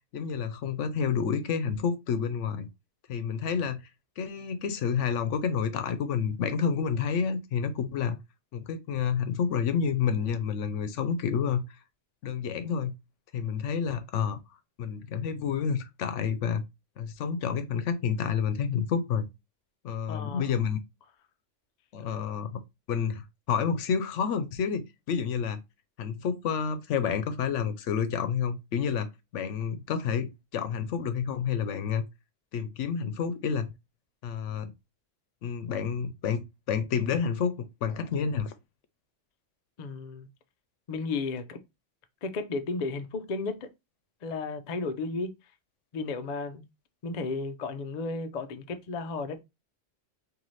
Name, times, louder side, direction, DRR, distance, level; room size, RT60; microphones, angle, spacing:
voice 1, 0.1-2.7 3.1-3.8 4.2-8.2 8.5-11.6 12.2-12.9 13.3-14.4 14.8-16.6 17.0-19.2 19.8-20.8 21.9-22.6 22.9-25.6 26.0-32.0 32.5-33.7 34.2-34.7 35.4-37.5 37.8-38.5, left 7 dB, 75° left, 0.9 m, -29 dB
voice 2, 20.1-20.6 39.8-40.3 40.9-41.6 42.2-43.7 44.2-45.3 45.9-46.6 47.0-49.4, left 3 dB, 50° left, 0.5 m, -33 dB
4.0 x 2.8 x 3.1 m
omnidirectional pair, 1.3 m